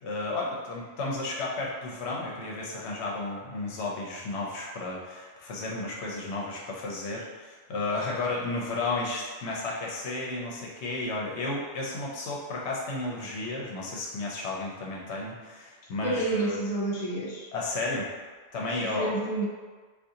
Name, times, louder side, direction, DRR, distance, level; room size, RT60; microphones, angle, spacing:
voice 1, 0.0-16.6 17.5-18.1 18.5-19.1, left 2 dB, 70° left, -3 dB, 0.9 m, -33 dB
voice 2, 16.0-17.5 18.8-19.5, right 2 dB, 45° left, -4 dB, 0.5 m, -29 dB
2.7 x 2.4 x 3.6 m, 1.4 s
omnidirectional pair, 1.2 m